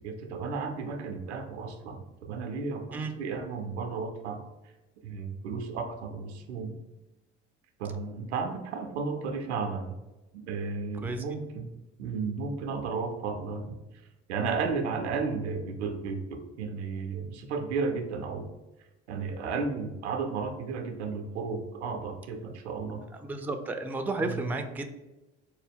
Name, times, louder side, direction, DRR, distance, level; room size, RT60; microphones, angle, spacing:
voice 1, 0.0-4.4 5.0-6.7 7.8-10.0 10.3-11.7 12.0-13.8 14.3-18.5 19.1-23.0 24.2-24.5, right 4 dB, 85° right, 4 dB, 0.6 m, -33 dB
voice 2, 23.2-24.9, right 2 dB, 5° right, 6 dB, 0.4 m, -32 dB
4.6 x 2.2 x 3.5 m, 1.0 s
hypercardioid pair, 60°, 33 cm